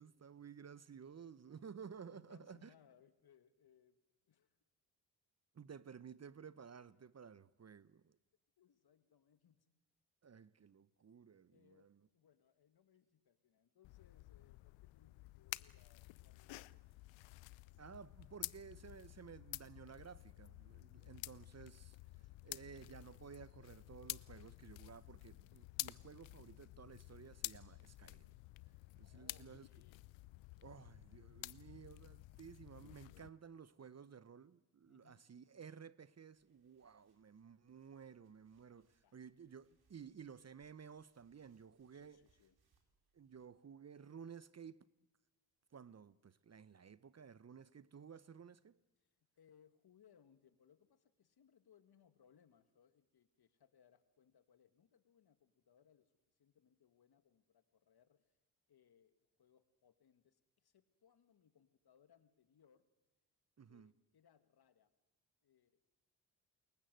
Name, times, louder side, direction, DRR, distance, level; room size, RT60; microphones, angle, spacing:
voice 1, 0.0-2.7 5.5-8.2 10.2-12.0 17.8-22.0 22.4-28.3 29.0-29.7 30.6-42.2 43.1-44.8 45.7-48.8 63.6-63.9, right 7 dB, 35° right, 1.0 m, -55 dB
voice 2, 0.7-1.6 2.0-4.0 4.2-4.6 6.9-7.3 8.6-9.7 11.5-17.0 29.0-30.0 30.5-30.9 34.9-35.2 38.7-39.2 41.9-42.6 49.0-56.1 56.4-58.4 58.7-59.1 59.4-62.8 63.7-64.9 65.4-65.8, left 8 dB, 55° left, 2.4 m, -71 dB
sound 1, 13.8-33.3, left 20 dB, 75° left, 0.8 m, -51 dB
sound 2, 36.3-43.5, right 5 dB, 55° right, 4.7 m, -82 dB
28.0 x 22.5 x 7.9 m
hypercardioid pair, 45°, 46 cm